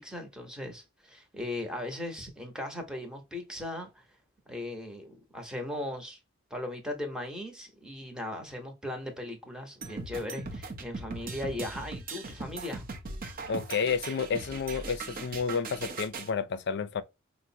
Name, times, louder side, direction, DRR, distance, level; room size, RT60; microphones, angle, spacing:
voice 1, 0.0-4.0 4.5-6.2 6.5-12.9, left 1 dB, 5° right, 0.9 m, -38 dB
sound 1, 9.8-16.3, right 3 dB, 45° right, 0.7 m, -39 dB
voice 2, 13.5-17.0, left 6 dB, 55° left, 0.4 m, -31 dB
4.7 x 2.1 x 2.7 m
head